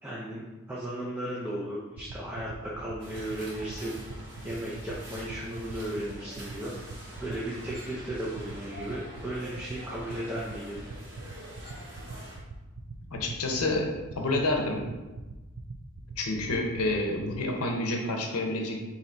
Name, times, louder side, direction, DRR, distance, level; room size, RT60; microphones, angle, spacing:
voice 1, 0.0-4.0 4.4-6.7 7.2-10.8, right 1 dB, 10° right, -7 dB, 0.5 m, -35 dB
sound 1, 2.0-17.3, right 4 dB, 65° right, 0.4 m, -41 dB
sound 2, 3.0-12.4, right 1 dB, 50° right, 1.5 m, -46 dB
voice 2, 13.1-14.9 16.2-18.8, left 2 dB, 85° left, 2 dB, 0.7 m, -29 dB
4.0 x 2.8 x 4.3 m, 1.1 s
head